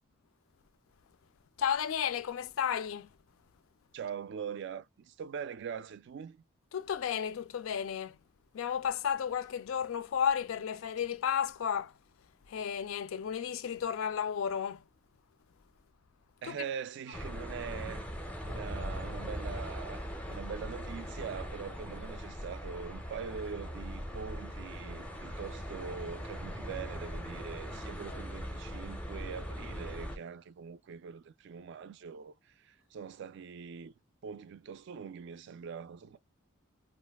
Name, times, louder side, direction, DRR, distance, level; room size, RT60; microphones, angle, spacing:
voice 1, 1.6-3.1 6.7-8.2 8.5-12.0 12.5-14.9 16.4-16.6, left 8 dB, 80° left, 0.4 m, -33 dB
voice 2, 3.9-6.4 16.4-18.0 18.4-33.9 34.2-36.2, right 7 dB, 60° right, 0.3 m, -43 dB
sound 1, 17.1-30.2, equal, 5° left, 0.5 m, -40 dB
2.4 x 2.2 x 3.3 m
head